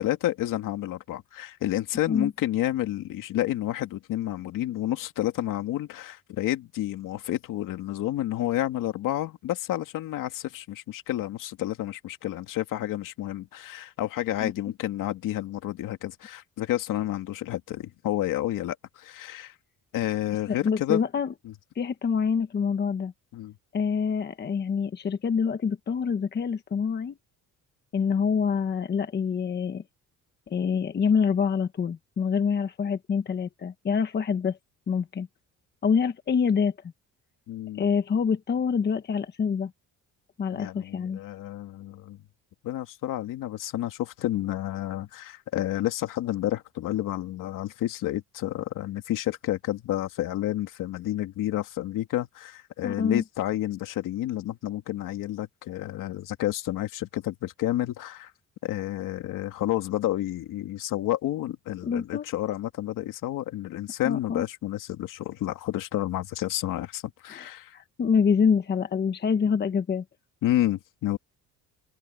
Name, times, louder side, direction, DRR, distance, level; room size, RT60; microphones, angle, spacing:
voice 1, 0.0-19.5 19.9-21.0 21.4-21.5 23.3-23.5 37.5-37.9 40.5-42.2 42.6-58.3 58.6-67.7 70.4-71.2, left 14 dB, 75° left, 2.5 m, -30 dB
voice 2, 20.3-21.4 21.7-23.1 23.7-27.1 27.9-29.8 30.5-34.6 34.9-35.3 35.8-36.7 37.8-39.7 40.4-41.2 52.8-53.3 61.8-62.3 64.0-64.5 67.3-70.0, left 6 dB, 30° left, 1.2 m, -26 dB
open air
cardioid pair, 150°, 32 cm